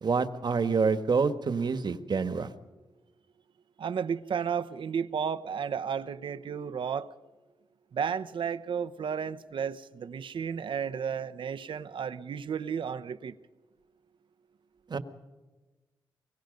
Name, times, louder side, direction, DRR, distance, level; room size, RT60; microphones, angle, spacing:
voice 1, 0.0-2.5 14.9-15.0, right 5 dB, 55° right, 11 dB, 1.5 m, -27 dB
voice 2, 3.8-7.1 7.9-13.3, right 7 dB, 70° right, 11 dB, 0.9 m, -33 dB
24.5 x 22.5 x 5.3 m, 1.2 s
cardioid pair, 50°, 9 cm